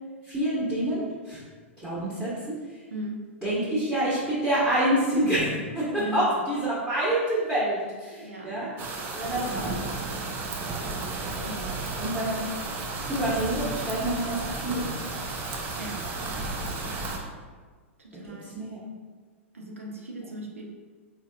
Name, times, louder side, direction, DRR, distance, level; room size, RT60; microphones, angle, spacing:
voice 1, 0.2-1.4 1.8-2.8 3.4-5.5 5.7-8.7 9.1-9.7 12.0-12.5 13.0-15.0 18.2-18.8, right 1 dB, 10° right, -9 dB, 1.2 m, -27 dB
voice 2, 2.9-3.2 5.9-6.3 8.2-8.5 11.4-11.9 15.8-16.0 18.0-18.6 19.5-20.6, right 1 dB, 80° right, 0 dB, 0.7 m, -38 dB
sound 1, 8.8-17.2, right 3 dB, 30° right, 0.6 m, -33 dB
4.4 x 3.9 x 2.4 m, 1.5 s
figure-of-eight pair, 100°, 7 cm